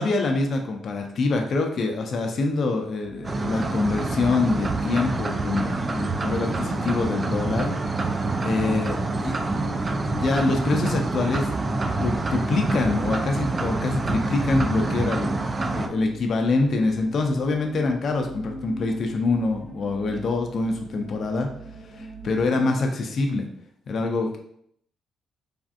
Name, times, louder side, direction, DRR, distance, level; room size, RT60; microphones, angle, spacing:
voice 1, 0.0-7.7 8.4-9.5 10.1-11.5 11.8-15.4 15.7-21.5 21.9-23.5 23.9-24.4, left 3 dB, 55° left, 3 dB, 0.4 m, -25 dB
sound 1, 3.0-22.4, left 1 dB, 15° left, 0.8 m, -40 dB
sound 2, 3.2-15.9, right 3 dB, 30° right, 0.3 m, -27 dB
3.4 x 2.5 x 2.4 m, 0.68 s
cardioid pair, 90°, 0 cm